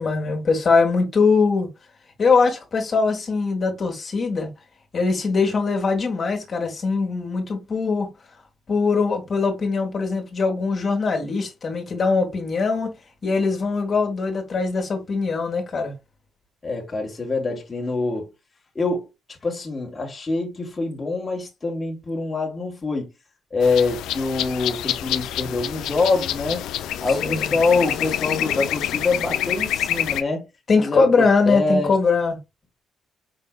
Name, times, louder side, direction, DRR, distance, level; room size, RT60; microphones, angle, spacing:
voice 1, 0.0-1.7 2.2-4.5 4.9-8.1 8.7-12.9 13.2-15.9 27.1-27.5 30.7-32.4, left 4 dB, 45° left, 1.7 m, -21 dB
voice 2, 16.6-18.3 18.7-19.1 19.4-23.1 23.5-26.6 27.0-30.4 30.8-31.9, left 3 dB, 25° left, 1.6 m, -25 dB
sound 1, 23.6-30.2, left 12 dB, 85° left, 0.4 m, -27 dB
5.0 x 3.7 x 2.3 m
cardioid pair, 90°, 0 cm